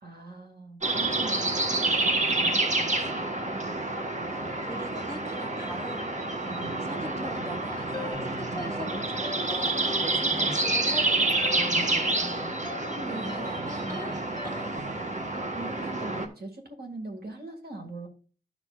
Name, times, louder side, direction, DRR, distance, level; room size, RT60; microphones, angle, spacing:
voice 1, 0.0-3.3 6.4-6.7 8.4-8.7 11.7-12.0 12.9-13.6 15.3-18.1, right 2 dB, 70° right, 3 dB, 1.9 m, -42 dB
sound 1, 0.8-16.3, right 2 dB, 45° right, 1.4 m, -28 dB
voice 2, 4.3-6.0 6.8-11.5 13.0-14.8, equal, 20° right, 0 dB, 1.1 m, -42 dB
sound 2, 7.9-14.8, left 2 dB, 25° left, 1.2 m, -41 dB
13.0 x 5.9 x 2.4 m, 0.38 s
wide cardioid pair, 75°, 17 cm